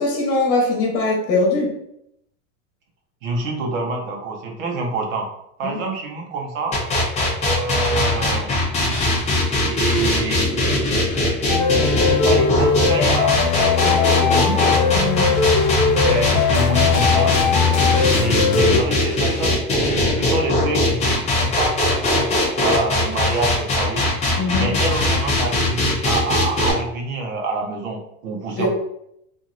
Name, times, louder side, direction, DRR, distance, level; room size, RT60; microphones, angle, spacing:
voice 1, 0.0-1.7 5.6-5.8 14.9-15.3 24.4-24.7 28.6-28.7, left 2 dB, 35° left, 0 dB, 1.0 m, -21 dB
voice 2, 3.2-5.3 5.6-6.8 7.4-8.5 9.7-11.3 12.2-13.4 13.8-14.6 16.0-17.4 17.6-21.0 21.4-22.3 22.6-24.0 24.6-28.7, right 3 dB, 90° right, 1 dB, 0.9 m, -26 dB
sound 1, 6.7-26.7, left 1 dB, 20° left, 0.6 m, -20 dB
sound 2, 11.5-18.8, left 5 dB, 80° left, 0.6 m, -19 dB
2.9 x 2.6 x 2.5 m, 0.78 s
supercardioid pair, 140°, 38 cm